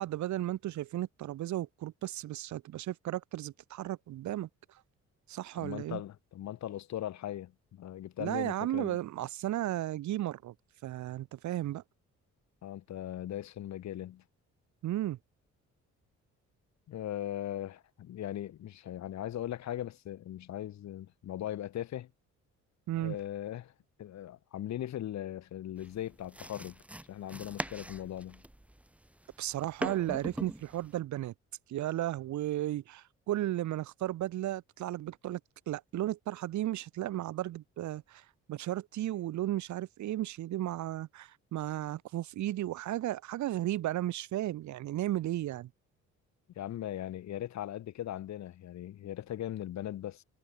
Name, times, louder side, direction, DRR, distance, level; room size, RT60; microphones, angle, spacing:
voice 1, 0.0-4.5 5.3-6.0 8.2-10.5 10.8-11.8 14.8-15.2 22.9-23.2 29.4-31.3 31.7-35.4 35.7-45.7, right 14 dB, 70° right, 0.9 m, -34 dB
voice 2, 5.6-9.0 12.6-14.2 16.9-22.1 23.0-23.7 24.0-26.8 27.1-28.4 46.6-50.2, left 12 dB, 65° left, 1.2 m, -39 dB
sound 1, 25.8-31.0, right 1 dB, 5° right, 1.1 m, -42 dB
cardioid pair, 90°, 30 cm